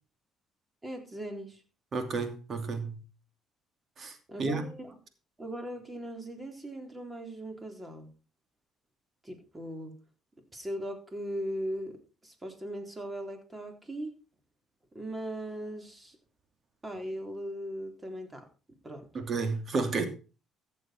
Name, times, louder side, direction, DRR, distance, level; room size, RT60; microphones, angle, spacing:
voice 1, 0.8-1.6 4.3-4.9 5.4-8.1 9.2-9.9 10.5-14.2 14.9-16.2 16.8-18.5 18.8-19.1, equal, 20° right, 3.8 m, -39 dB
voice 2, 1.9-3.0 4.0-4.6 19.1-20.1, right 4 dB, 45° right, 2.7 m, -31 dB
14.5 x 7.7 x 4.6 m
supercardioid pair, 85°, 0 cm